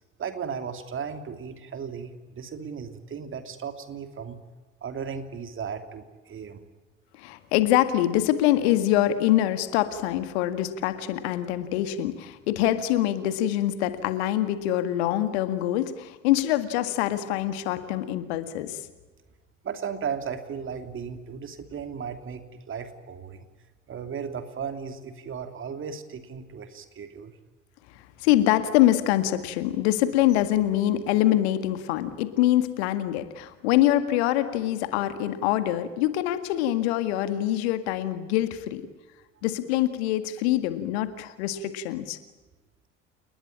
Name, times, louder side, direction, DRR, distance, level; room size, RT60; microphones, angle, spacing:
voice 1, 0.2-4.4 4.8-6.6 19.6-23.5 23.9-27.4, right 6 dB, 35° right, 8 dB, 2.8 m, -36 dB
voice 2, 7.2-18.8 28.2-38.8 39.4-42.2, left 13 dB, 60° left, 11 dB, 1.9 m, -24 dB
29.5 x 20.5 x 8.8 m, 1.2 s
figure-of-eight pair, 65°, 37 cm